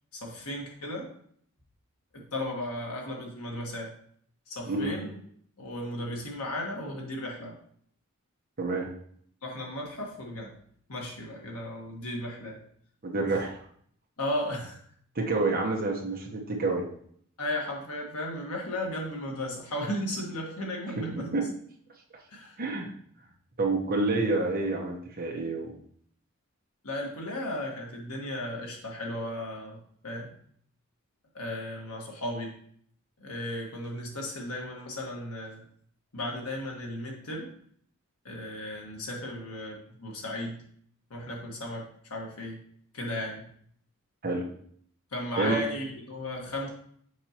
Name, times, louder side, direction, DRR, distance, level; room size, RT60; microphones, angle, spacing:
voice 1, 0.1-1.1 2.1-3.9 4.5-5.2 5.6-7.6 9.4-10.6 10.9-12.6 13.3-13.4 14.2-14.8 17.4-21.4 22.3-22.6 26.8-29.8 30.0-30.3 31.3-32.5 33.2-35.6 36.1-37.5 38.2-40.6 41.1-42.6 42.9-43.5 45.1-46.7, left 1 dB, 90° left, -1 dB, 1.6 m, -35 dB
voice 2, 8.6-8.9 13.0-13.6 15.1-16.9 21.2-21.5 22.6-22.9 23.6-25.7 44.2-44.4 45.4-45.6, right 3 dB, 40° right, 0 dB, 1.1 m, -28 dB
6.5 x 5.3 x 2.9 m, 0.62 s
head